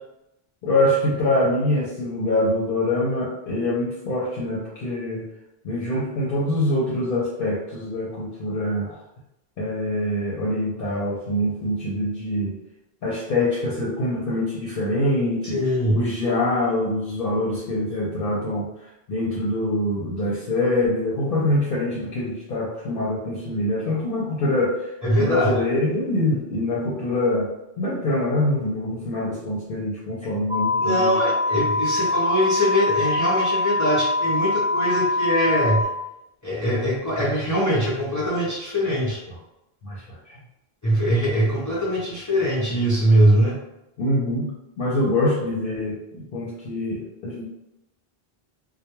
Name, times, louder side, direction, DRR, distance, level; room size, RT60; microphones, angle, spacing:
voice 1, 0.6-5.3 5.6-9.0 9.6-12.5 13.0-18.6 19.1-24.8 25.2-27.5 27.8-31.2 39.8-40.2 44.0-47.4, left 1 dB, 65° left, -6 dB, 0.7 m, -24 dB
voice 2, 15.4-16.1 25.0-25.5 30.8-35.9 36.4-39.2 40.8-43.5, equal, 30° left, -7 dB, 0.4 m, -22 dB
sound 1, 30.5-35.8, left 2 dB, 60° right, 0.9 m, -23 dB
2.2 x 2.1 x 2.9 m, 0.89 s
omnidirectional pair, 1.0 m